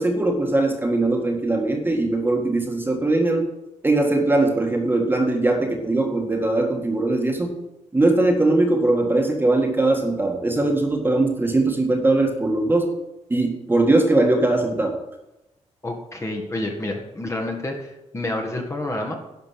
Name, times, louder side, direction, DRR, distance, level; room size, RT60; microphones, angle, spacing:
voice 1, 0.0-3.5 3.8-7.6 7.9-12.9 13.3-15.0, right 2 dB, 15° right, 3 dB, 1.8 m, -20 dB
voice 2, 15.8-19.1, left 1 dB, 25° left, 2 dB, 1.8 m, -29 dB
11.5 x 5.2 x 7.4 m, 0.94 s
cardioid pair, 85°, 12 cm